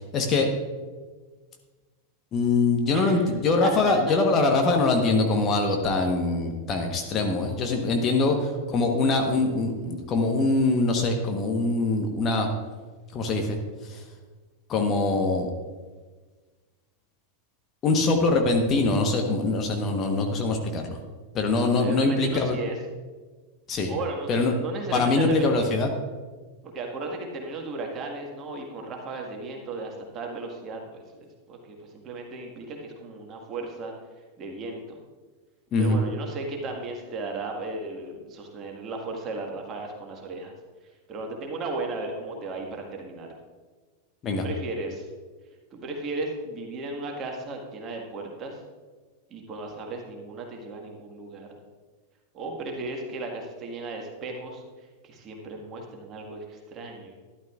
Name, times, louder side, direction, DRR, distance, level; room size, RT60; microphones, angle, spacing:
voice 1, 0.1-0.5 2.3-12.5 13.1-13.6 13.8-14.0 14.7-15.5 17.8-21.0 21.3-22.6 23.7-23.9 24.3-24.5 24.9-25.9 35.7-36.0 44.2-44.4, left 3 dB, 30° left, 3 dB, 1.2 m, -23 dB
voice 2, 2.9-3.3 3.6-3.9 21.8-22.8 23.9-25.8 26.6-31.7 32.0-33.9 34.4-35.0 35.8-40.5 41.1-43.3 44.3-45.1 45.7-48.6 49.3-51.5 52.3-54.6 55.0-57.2, right 3 dB, 30° right, 1 dB, 1.7 m, -35 dB
12.5 x 11.5 x 2.5 m, 1.4 s
figure-of-eight pair, 90°, 0 cm